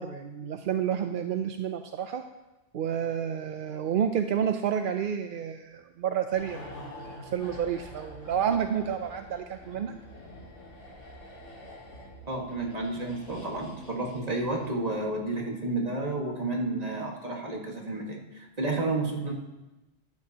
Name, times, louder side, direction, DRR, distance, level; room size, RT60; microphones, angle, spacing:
voice 1, 0.0-2.2 2.7-9.9, right 8 dB, 60° right, 7 dB, 0.6 m, -30 dB
sound 1, 6.3-14.9 15.1-15.3, left 1 dB, 80° left, 2.3 m, -47 dB
voice 2, 12.3-19.3, right 2 dB, 35° right, -1 dB, 1.7 m, -31 dB
13.0 x 12.5 x 2.9 m, 1.1 s
omnidirectional pair, 1.3 m